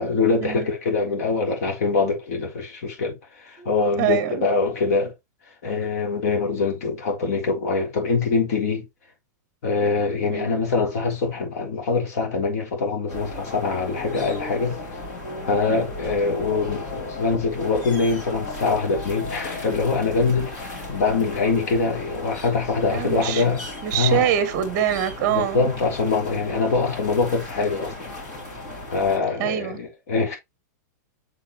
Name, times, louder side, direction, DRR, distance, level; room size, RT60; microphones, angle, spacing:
voice 1, 0.0-5.1 5.6-8.8 9.6-14.8 15.5-23.6 23.9-24.3 25.3-28.1 28.9-30.4, left 4 dB, 55° left, 3.4 m, -24 dB
voice 2, 3.6-4.5 10.3-10.5 15.7-15.9 22.9-23.4 23.8-25.7 29.4-29.8, right 10 dB, 30° right, 1.2 m, -25 dB
sound 1, 13.1-29.2, left 2 dB, 30° left, 2.8 m, -35 dB
6.9 x 5.1 x 3.1 m
supercardioid pair, 170°, 10 cm